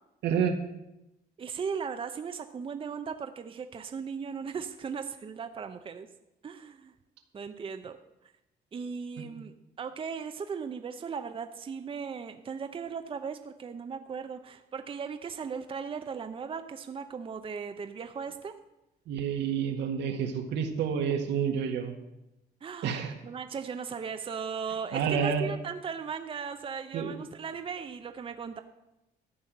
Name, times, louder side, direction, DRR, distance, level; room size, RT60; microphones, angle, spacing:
voice 1, 0.2-0.6 9.2-9.3 19.1-21.9 22.8-23.1 24.9-25.5 26.9-27.1, right 7 dB, 80° right, 4 dB, 1.7 m, -29 dB
voice 2, 1.4-6.1 6.4-6.9 7.3-8.0 8.7-18.5 22.6-28.6, right 6 dB, 30° right, 8 dB, 0.7 m, -37 dB
13.5 x 5.7 x 8.9 m, 0.93 s
cardioid pair, 120°, 18 cm